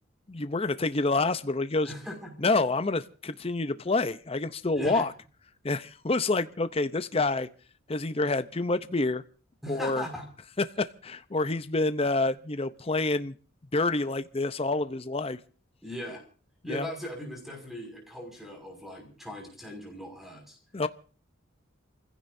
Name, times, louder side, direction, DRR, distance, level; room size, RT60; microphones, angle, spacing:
voice 1, 0.3-1.9 2.4-5.1 5.6-7.5 7.9-9.2 9.7-10.1 10.6-13.3 13.7-15.4 16.7-16.9 20.7-20.9, left 3 dB, 30° left, 11 dB, 0.7 m, -27 dB
voice 2, 1.8-2.3 4.7-5.1 9.6-10.2 15.8-16.2 16.6-20.6, equal, ahead, 3 dB, 5.9 m, -39 dB
28.5 x 16.0 x 2.7 m, 0.40 s
head